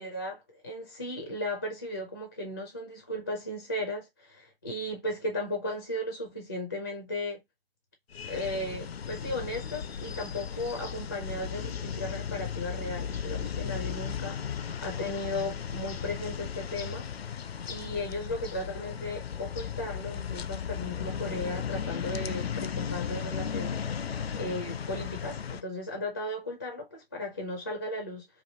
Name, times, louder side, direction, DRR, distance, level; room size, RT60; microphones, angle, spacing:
voice 1, 0.0-7.4 8.3-17.1 17.7-28.3, left 1 dB, 15° left, 0.4 m, -36 dB
sound 1, 8.1-25.6, left 7 dB, 75° left, 0.5 m, -36 dB
3.2 x 2.5 x 2.8 m
figure-of-eight pair, 140°, 31 cm